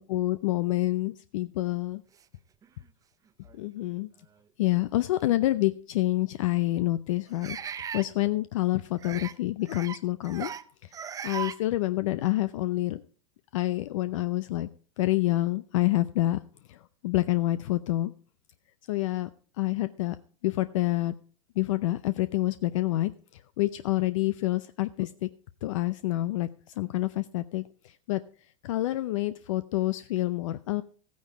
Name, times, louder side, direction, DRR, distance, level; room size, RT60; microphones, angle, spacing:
voice 1, 0.0-2.0 3.5-4.1 4.6-7.6 7.9-10.5 10.8-10.9 11.2-13.0 13.5-14.7 15.0-16.4 16.7-18.1 18.9-19.3 19.6-20.2 20.4-21.1 21.6-25.3 25.6-28.2 28.6-30.8, left 17 dB, 70° left, 13 dB, 0.6 m, -27 dB
sound 1, 2.6-2.7 3.5-3.6 5.2-5.3 7.4-8.1 9.0-9.3 9.7-10.0 10.2-10.6 10.9-11.6, right 8 dB, 20° right, 0.6 m, -37 dB
14.0 x 9.4 x 4.7 m, 0.42 s
hypercardioid pair, 115°, 17 cm